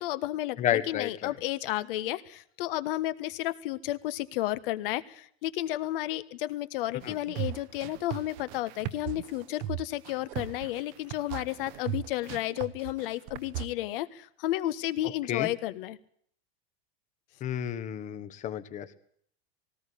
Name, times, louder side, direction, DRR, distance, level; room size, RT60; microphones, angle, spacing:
voice 1, 0.0-16.0, left 15 dB, 55° left, 14 dB, 1.5 m, -32 dB
voice 2, 0.6-1.3 7.0-7.2 15.3-15.5 17.4-19.0, left 10 dB, 25° left, 12 dB, 1.3 m, -31 dB
sound 1, 7.0-13.7, right 12 dB, 45° right, 1.1 m, -37 dB
19.0 x 18.5 x 8.5 m, 0.62 s
supercardioid pair, 165°, 32 cm